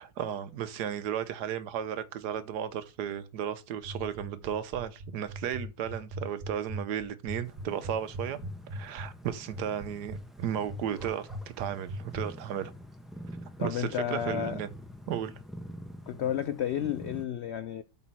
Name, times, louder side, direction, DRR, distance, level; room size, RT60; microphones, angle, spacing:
voice 1, 0.0-8.4 8.7-12.7 13.6-14.7 15.1-15.3, right 9 dB, 85° right, 1.4 m, -34 dB
sound 1, 3.8-12.2, right 1 dB, 45° right, 1.5 m, -39 dB
sound 2, 7.4-17.2, equal, ahead, 1.1 m, -46 dB
voice 2, 13.6-14.6 16.1-17.8, left 10 dB, 75° left, 0.6 m, -32 dB
8.2 x 4.1 x 6.0 m
omnidirectional pair, 1.7 m